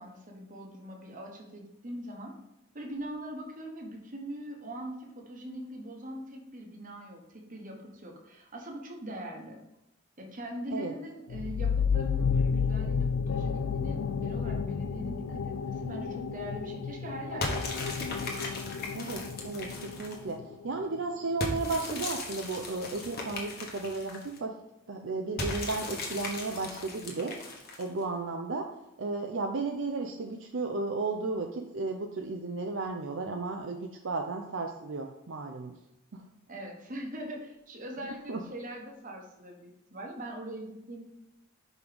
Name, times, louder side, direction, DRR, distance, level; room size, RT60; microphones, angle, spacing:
voice 1, 0.0-2.3 2.7-9.6 10.2-17.9 36.5-41.0, right 1 dB, 35° right, 1 dB, 1.1 m, -42 dB
sound 1, 11.3-20.7, left 6 dB, 75° left, 0.4 m, -31 dB
sound 2, 17.4-20.3 21.4-24.4 25.4-28.0, left 2 dB, 45° left, 1.1 m, -37 dB
voice 2, 18.9-24.6 24.9-35.8 36.1-36.2 38.3-38.4, right 3 dB, 60° right, 3 dB, 0.5 m, -34 dB
5.5 x 4.9 x 5.1 m, 0.92 s
head